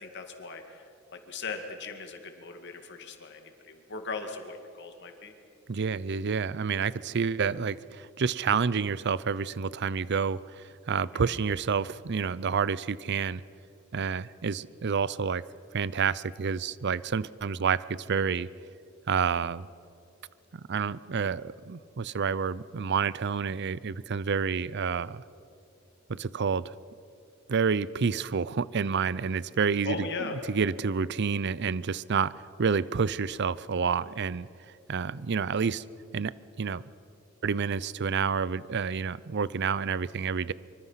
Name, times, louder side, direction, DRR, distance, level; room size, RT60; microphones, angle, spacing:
voice 1, 0.0-5.3 11.1-11.4 29.8-30.4, left 4 dB, 60° left, 5 dB, 2.2 m, -39 dB
voice 2, 5.7-13.4 13.9-15.4 15.7-18.5 19.1-19.7 20.7-25.2 26.1-26.7 27.5-30.0 30.5-32.3 32.6-34.5 34.9-35.8 36.1-36.8 37.4-40.5, right 6 dB, 55° right, 19 dB, 0.5 m, -29 dB
25.5 x 24.5 x 5.8 m, 2.5 s
head